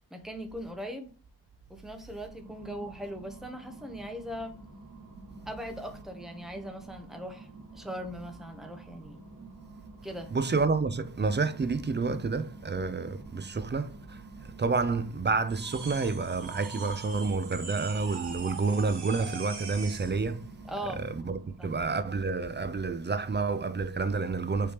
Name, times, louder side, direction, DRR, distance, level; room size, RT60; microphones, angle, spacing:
voice 1, 0.1-1.1 1.7-4.6 5.5-9.3 10.0-10.3 20.6-21.0 21.6-21.7, equal, ahead, 0.7 m, -40 dB
sound 1, 2.2-21.9, right 2 dB, 45° right, 1.4 m, -50 dB
voice 2, 10.3-20.5 20.9-24.7, right 4 dB, 25° right, 0.4 m, -29 dB
sound 2, 15.5-20.2, right 5 dB, 65° right, 1.3 m, -42 dB
5.1 x 3.2 x 2.9 m
wide cardioid pair, 115°, 43 cm